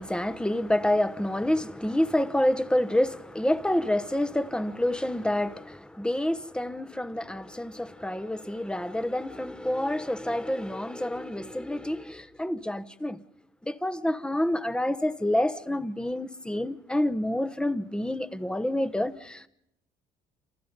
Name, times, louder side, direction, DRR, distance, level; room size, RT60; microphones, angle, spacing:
voice 1, 0.0-13.2 13.6-19.5, left 1 dB, 5° left, 1.1 m, -28 dB
28.5 x 28.0 x 5.3 m
cardioid pair, 110°, 17 cm